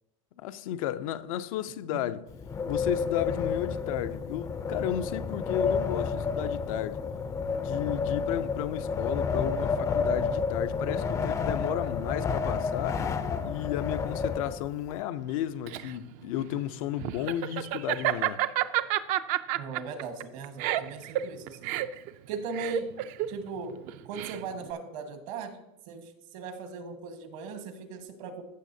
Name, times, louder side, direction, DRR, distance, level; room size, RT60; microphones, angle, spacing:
voice 1, 0.4-2.3 2.7-7.0 7.6-13.0 13.4-18.4, left 12 dB, 80° left, 0.5 m, -33 dB
Wind, 2.3-14.9, left 5 dB, 15° left, 0.4 m, -30 dB
Laughter, 15.3-24.7, right 14 dB, 45° right, 0.4 m, -30 dB
voice 2, 19.5-21.7 22.3-22.9 23.3-23.8 24.0-25.6 25.9-28.5, right 4 dB, 70° right, 1.4 m, -38 dB
14.5 x 6.5 x 2.7 m
supercardioid pair, 150°, 18 cm